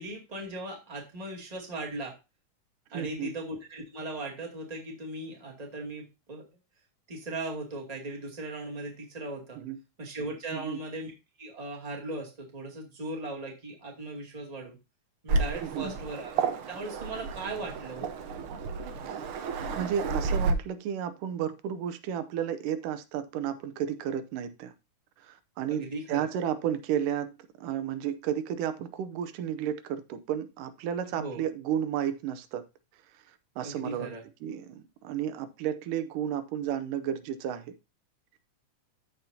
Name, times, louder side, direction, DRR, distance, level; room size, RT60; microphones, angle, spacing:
voice 1, 0.0-2.1 2.9-6.5 7.1-9.6 10.0-11.1 11.4-14.8 15.2-18.1 25.7-26.3 31.2-31.4 33.6-34.2, right 2 dB, 15° right, 1.9 m, -38 dB
voice 2, 2.9-3.3 9.6-9.8 10.5-10.8 15.6-15.9 19.1-19.3 19.8-24.7 25.2-32.6 33.6-34.1 34.4-37.8, right 9 dB, 85° right, 2.4 m, -32 dB
Waves surf, 15.3-20.5, right 4 dB, 65° right, 1.3 m, -31 dB
14.0 x 5.3 x 2.7 m
omnidirectional pair, 3.7 m